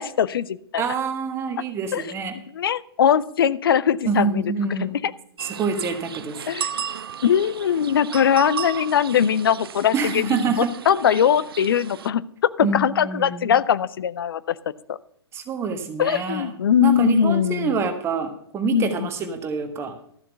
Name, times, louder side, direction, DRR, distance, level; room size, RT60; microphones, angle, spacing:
voice 1, 0.0-0.8 1.9-2.0 2.5-4.4 4.8-4.9 6.5-6.7 7.2-14.6 14.9-15.0 16.0-17.8 18.6-19.1, left 9 dB, 60° left, 18 dB, 0.5 m, -21 dB
voice 2, 0.8-2.3 4.0-5.0 5.4-6.4 9.9-10.7 12.6-13.6 15.3-16.5 16.8-20.0, right 5 dB, 20° right, 7 dB, 1.5 m, -26 dB
sound 1, 5.4-12.1, right 8 dB, 60° right, 0.5 m, -35 dB
13.0 x 7.3 x 5.7 m, 0.68 s
figure-of-eight pair, 115°, 14 cm